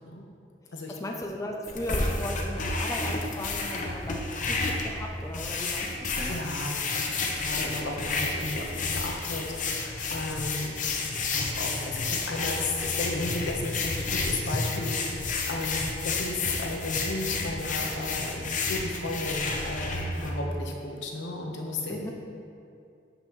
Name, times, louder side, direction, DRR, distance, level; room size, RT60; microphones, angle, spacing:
voice 1, 0.9-6.4 21.9-22.1, left 1 dB, 20° left, 1 dB, 0.4 m, -37 dB
sound 1, 1.7-20.3, left 3 dB, 45° left, 0.7 m, -31 dB
voice 2, 6.3-22.1, left 2 dB, 80° left, 1 dB, 1.0 m, -34 dB
12.0 x 5.4 x 3.1 m, 2.5 s
head